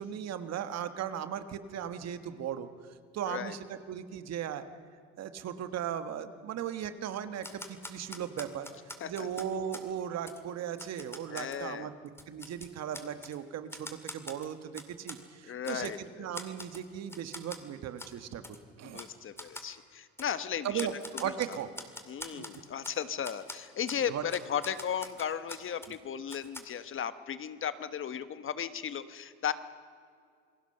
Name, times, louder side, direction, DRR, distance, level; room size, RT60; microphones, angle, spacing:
voice 1, 0.0-2.7 3.1-4.7 5.2-8.7 9.0-11.9 12.3-19.0 20.6-20.9 21.2-21.7 22.3-22.4 24.1-24.2, right 9 dB, 55° right, 10 dB, 1.5 m, -37 dB
Typewriter, 7.4-9.9 10.3-10.4 10.8-11.6 12.1-13.4 13.7-15.2 15.6-16.0 16.3-16.8 17.1-17.6 18.0-18.1 18.4-18.6 18.9-19.1 19.4-19.7 20.2-20.3 20.8-23.0 23.2-23.6 23.9-24.0 24.3-26.0 26.3-26.6, left 1 dB, 10° left, 2.3 m, -44 dB
voice 2, 11.3-11.9 15.5-16.3 18.8-20.9 21.2-21.6 22.1-29.5, left 8 dB, 40° left, 12 dB, 1.2 m, -36 dB
28.0 x 18.5 x 6.6 m, 2.2 s
supercardioid pair, 95°, 31 cm